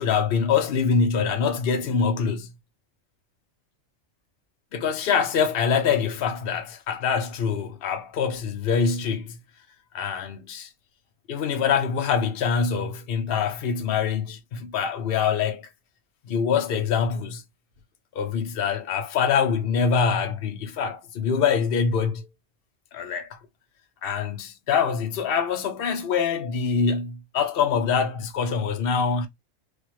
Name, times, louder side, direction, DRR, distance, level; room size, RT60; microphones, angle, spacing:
voice 1, 0.0-2.5 4.7-9.4 9.9-10.7 11.3-15.7 16.3-17.4 18.1-22.3 22.9-23.4 24.0-29.3, left 6 dB, 55° left, 0.8 m, -24 dB
3.4 x 2.2 x 2.9 m
omnidirectional pair, 1.4 m